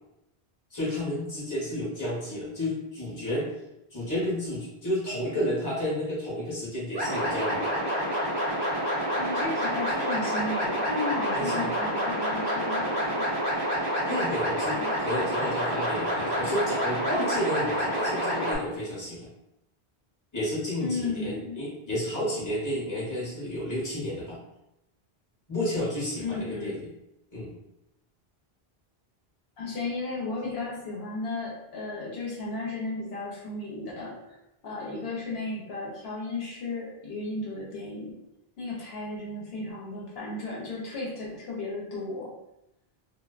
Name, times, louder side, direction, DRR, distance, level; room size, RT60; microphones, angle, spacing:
voice 1, 0.7-3.5 3.9-7.7 11.3-11.7 14.1-19.3 20.3-24.4 25.5-26.9 27.3-27.5, equal, 20° left, -7 dB, 0.9 m, -31 dB
sound 1, 6.9-18.6, equal, 25° right, 0.7 m, -28 dB
voice 2, 9.1-13.3 14.7-14.9 20.8-21.6 26.2-26.8 29.6-34.4 34.6-38.2 38.6-42.3, left 2 dB, 75° left, -4 dB, 0.9 m, -34 dB
2.4 x 2.2 x 2.3 m, 0.87 s
omnidirectional pair, 1.0 m